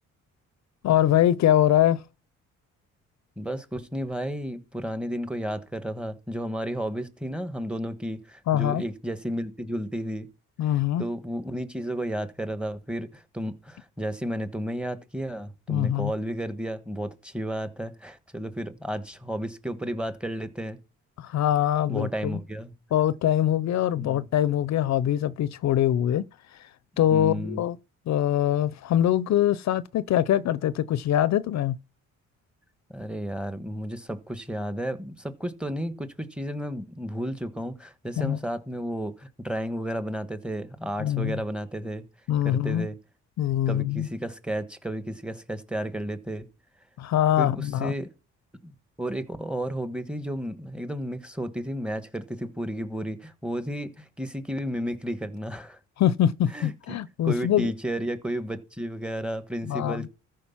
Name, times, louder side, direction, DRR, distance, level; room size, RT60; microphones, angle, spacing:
voice 1, 0.8-2.0 8.5-8.8 10.6-11.0 15.7-16.1 21.2-22.4 22.9-26.2 27.0-27.8 28.1-31.8 38.2-38.4 41.0-41.4 42.3-42.9 43.4-44.1 47.0-47.9 56.0-57.7 59.6-60.1, left 11 dB, 65° left, 0.6 m, -23 dB
voice 2, 3.4-10.3 11.0-20.8 21.9-22.7 24.0-24.3 26.9-27.6 32.9-42.1 42.4-43.0 43.7-46.5 47.4-48.1 48.6-55.8 56.5-57.0 57.2-60.1, equal, 5° right, 1.4 m, -32 dB
14.0 x 5.0 x 5.8 m
cardioid pair, 90°, 30 cm